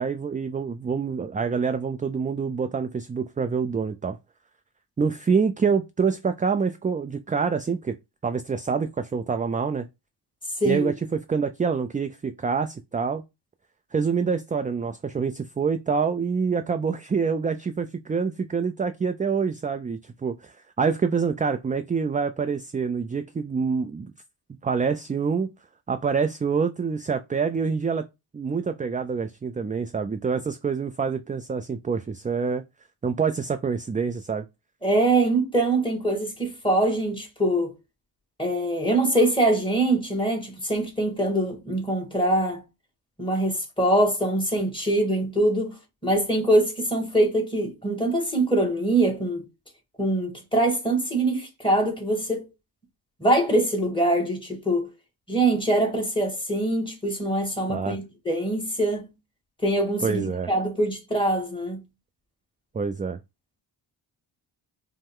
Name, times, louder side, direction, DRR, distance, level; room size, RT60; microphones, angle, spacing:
voice 1, 0.0-4.2 5.0-8.0 8.2-9.9 10.6-13.2 13.9-24.1 24.6-25.5 25.9-28.0 28.3-32.6 33.0-34.4 57.7-58.0 60.0-60.5 62.7-63.2, right 5 dB, 20° right, 0.3 m, -26 dB
voice 2, 10.6-10.9 34.8-37.7 38.4-42.6 43.2-45.8 46.0-49.4 50.0-52.5 53.2-54.9 55.3-59.1 59.6-61.8, right 1 dB, 10° left, 1.8 m, -23 dB
5.3 x 2.1 x 3.7 m
cardioid pair, 70°, 48 cm